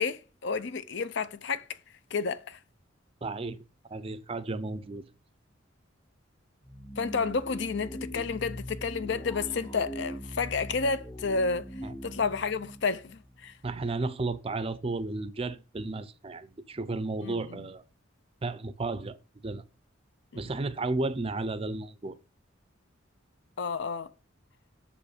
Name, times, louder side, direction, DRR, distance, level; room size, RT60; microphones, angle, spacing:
voice 1, 0.0-1.6 2.1-2.6 7.0-11.7 12.0-13.5 17.2-17.6 20.3-20.4 23.6-24.1, left 4 dB, 60° left, 0.5 m, -31 dB
voice 2, 3.2-3.6 3.9-5.0 11.8-11.9 13.6-17.8 18.4-19.2 19.4-19.6 20.3-22.2, right 3 dB, 30° right, 0.5 m, -33 dB
sound 1, 6.6-13.8, equal, 25° left, 1.9 m, -41 dB
7.0 x 5.1 x 4.9 m
head